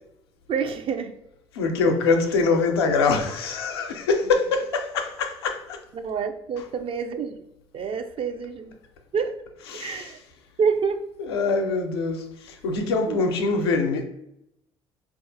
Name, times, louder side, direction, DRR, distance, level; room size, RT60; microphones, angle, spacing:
voice 1, 0.5-1.1 5.9-7.3 7.7-8.8 9.1-9.3 9.7-10.2 10.6-11.0 13.1-13.2, right 6 dB, 45° right, 0.5 m, -27 dB
voice 2, 1.5-5.8 9.7-10.1 11.2-14.0, left 4 dB, 90° left, 0.4 m, -24 dB
4.0 x 2.4 x 2.6 m
hypercardioid pair, 60°, 13 cm